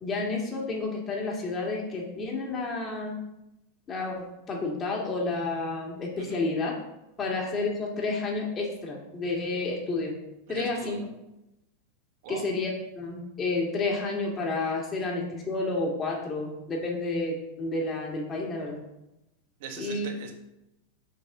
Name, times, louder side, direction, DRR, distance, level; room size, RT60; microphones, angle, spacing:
voice 1, 0.0-3.2 3.9-6.8 7.2-10.1 10.5-11.0 12.3-18.8 19.8-20.1, left 3 dB, 25° left, -1 dB, 2.2 m, -30 dB
voice 2, 10.5-11.1 12.2-12.5 19.6-20.3, right 6 dB, 65° right, 4 dB, 1.3 m, -41 dB
6.4 x 4.1 x 6.1 m, 0.89 s
hypercardioid pair, 120°, 0 cm